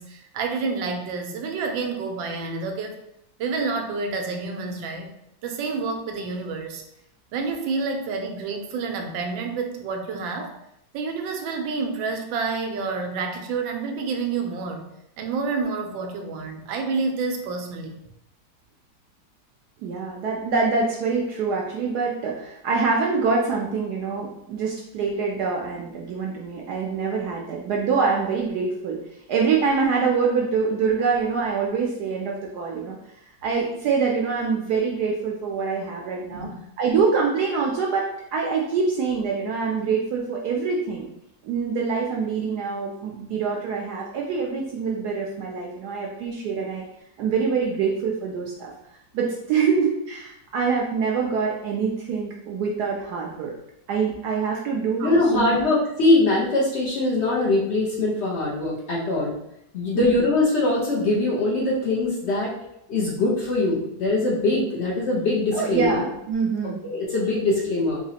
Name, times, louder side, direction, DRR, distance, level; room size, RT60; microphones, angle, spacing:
voice 1, 0.0-3.0 3.4-5.1 5.4-6.8 7.3-10.6 10.9-14.8 15.2-18.0 36.3-36.6 55.0-55.1, right 4 dB, 90° right, 4 dB, 1.3 m, -29 dB
voice 2, 19.8-29.0 29.3-33.0 33.4-36.5 36.8-41.1 41.4-46.8 47.2-48.7 49.1-53.5 53.9-55.5 59.9-60.1 65.5-66.8, right 5 dB, 70° right, -1 dB, 1.0 m, -25 dB
voice 3, 55.0-59.3 59.7-62.5 62.9-66.0 66.8-68.0, left 2 dB, 60° left, -4 dB, 0.7 m, -22 dB
4.0 x 2.9 x 2.8 m, 0.80 s
omnidirectional pair, 2.1 m